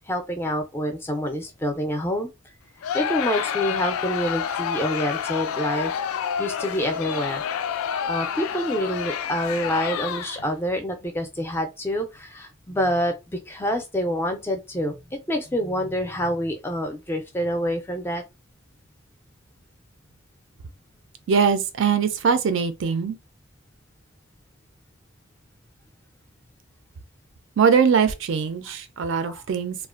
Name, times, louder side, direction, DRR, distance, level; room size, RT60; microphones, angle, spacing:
voice 1, 0.1-2.3 2.9-5.9 6.4-7.4 8.0-18.2 28.7-28.8 29.3-29.4, equal, 10° left, 0.4 m, -27 dB
Crowd, 2.8-10.5, left 8 dB, 85° left, 0.3 m, -29 dB
voice 2, 21.3-23.2 27.6-29.8, right 6 dB, 60° right, 0.4 m, -21 dB
2.4 x 2.2 x 2.3 m
head